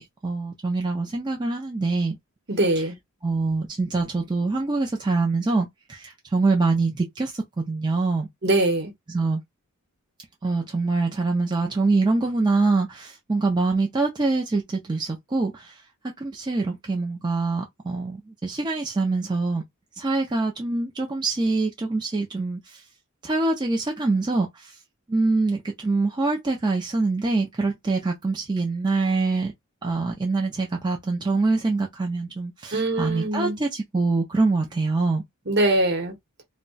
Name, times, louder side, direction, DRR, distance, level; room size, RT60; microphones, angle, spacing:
voice 1, 0.0-2.2 2.8-2.9 3.2-8.3 9.1-9.4 10.4-15.8 16.2-19.6 20.0-22.8 23.2-24.7 25.1-29.5 29.8-35.2, right 3 dB, 20° right, 0.4 m, -24 dB
voice 2, 2.5-3.0 8.4-8.9 32.7-33.6 35.5-36.1, right 1 dB, 50° right, 0.9 m, -22 dB
2.2 x 2.1 x 3.9 m
head